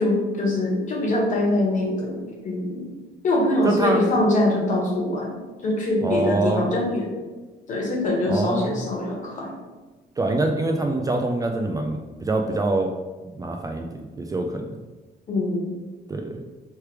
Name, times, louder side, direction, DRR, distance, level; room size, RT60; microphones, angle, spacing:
voice 1, 0.0-2.9 3.2-7.1 7.7-9.5 15.3-15.7, left 1 dB, 50° left, -1 dB, 1.3 m, -23 dB
voice 2, 3.6-4.2 6.0-6.7 8.3-8.8 10.2-12.9 13.4-13.9 14.2-14.8 16.1-16.4, right 2 dB, 20° right, 3 dB, 0.4 m, -24 dB
3.2 x 3.2 x 4.7 m, 1.2 s
cardioid pair, 110°, 17 cm